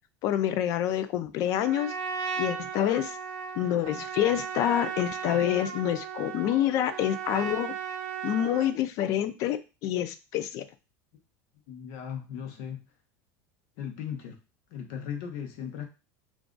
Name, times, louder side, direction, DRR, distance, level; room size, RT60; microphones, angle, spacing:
voice 1, 0.2-1.9 2.4-3.2 3.6-7.7 8.2-10.6, left 11 dB, 45° left, 12 dB, 0.3 m, -27 dB
Trumpet, 1.5-8.8, right 7 dB, 65° right, 0.7 m, -36 dB
voice 2, 11.7-12.8 13.8-14.4 14.7-15.9, left 8 dB, 60° left, 4 dB, 0.9 m, -37 dB
2.4 x 2.3 x 3.7 m, 0.30 s
supercardioid pair, 155°, 8 cm